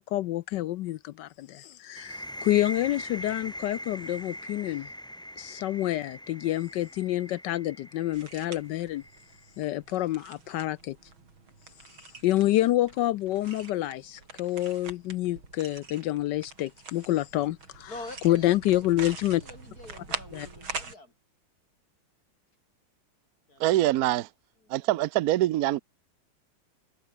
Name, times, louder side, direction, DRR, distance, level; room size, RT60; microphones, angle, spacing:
voice 1, 0.0-4.9 5.4-9.0 9.6-11.0 12.2-17.9 18.2-19.4 20.3-20.5, left 15 dB, 75° left, 1.1 m, -28 dB
sound 1, 2.0-9.5, equal, ahead, 4.1 m, -42 dB
sound 2, 8.1-21.0, right 4 dB, 85° right, 5.0 m, -44 dB
voice 2, 17.9-21.1 23.5-23.8 24.6-24.8, left 2 dB, 45° left, 5.7 m, -45 dB
voice 3, 23.6-24.3 24.7-25.8, right 15 dB, 70° right, 0.9 m, -24 dB
omnidirectional pair, 2.2 m